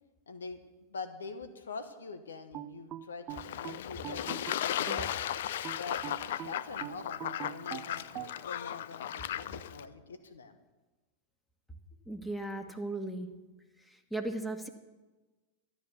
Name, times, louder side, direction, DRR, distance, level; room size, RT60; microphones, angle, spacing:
voice 1, 0.3-0.6 0.9-5.2 5.8-10.6, left 4 dB, 85° left, 10 dB, 1.2 m, -44 dB
sound 1, 2.5-5.1 5.6-8.4, right 12 dB, 35° right, 0.6 m, -43 dB
Fowl / Bird / Water, 3.3-9.8, left 11 dB, 70° left, 0.5 m, -36 dB
voice 2, 12.1-13.3 13.9-14.7, right 2 dB, 5° left, 5 dB, 1.8 m, -36 dB
13.0 x 11.0 x 6.9 m, 1.2 s
hypercardioid pair, 100°, 0 cm